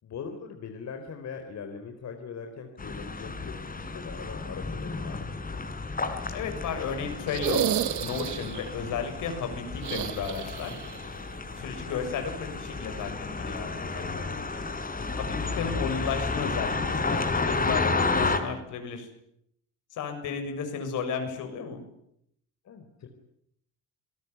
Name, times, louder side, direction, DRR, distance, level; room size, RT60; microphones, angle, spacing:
voice 1, 0.0-5.7 14.0-14.7 22.6-23.1, left 6 dB, 65° left, 5 dB, 4.2 m, -41 dB
sound 1, 2.8-18.4, left 3 dB, 30° left, 4.7 m, -32 dB
voice 2, 6.3-7.7 8.0-10.8 11.6-14.3 15.2-15.3 15.5-17.2 17.5-19.1 19.9-21.8, left 6 dB, 85° left, 6 dB, 7.1 m, -33 dB
sound 2, 7.3-8.7 9.8-11.0 11.2-11.3 13.0-13.1, right 11 dB, 75° right, 1.8 m, -30 dB
28.5 x 18.5 x 9.7 m, 0.74 s
cardioid pair, 90°, 30 cm